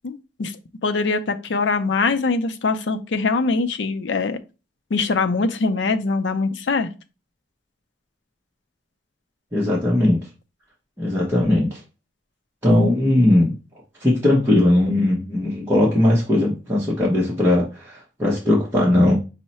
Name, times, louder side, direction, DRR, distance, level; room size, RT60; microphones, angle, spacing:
voice 1, 0.0-0.5 0.8-4.4 4.9-6.9 12.7-12.9, left 3 dB, 70° left, 0.5 m, -22 dB
voice 2, 9.5-10.2 11.0-11.8 12.6-13.5 14.0-19.1, left 1 dB, 15° right, 0.9 m, -18 dB
5.5 x 2.1 x 4.1 m
head